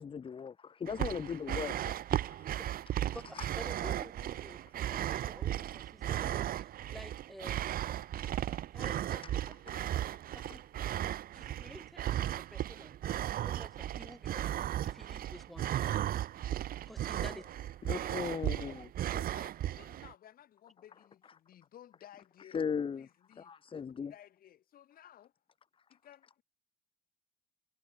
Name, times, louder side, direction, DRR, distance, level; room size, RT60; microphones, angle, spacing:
voice 1, 0.0-1.9 2.7-2.8 3.1-3.5 8.2-8.4 9.1-9.3 9.7-9.9 17.8-18.9 22.5-23.1 23.4-24.1, left 6 dB, 30° left, 1.1 m, -38 dB
sound 1, 0.9-20.1, right 12 dB, 60° right, 1.3 m, -36 dB
voice 2, 3.1-7.8 8.7-9.4 9.8-10.0 10.5-10.6 11.0-13.0 13.4-16.0 16.9-17.4 18.2-18.3, equal, ahead, 4.1 m, -51 dB
voice 3, 17.1-17.7 18.5-18.8 19.1-22.7 23.0-23.5 23.8-25.3 25.9-26.4, left 11 dB, 60° left, 5.0 m, -56 dB
cardioid pair, 110°, 17 cm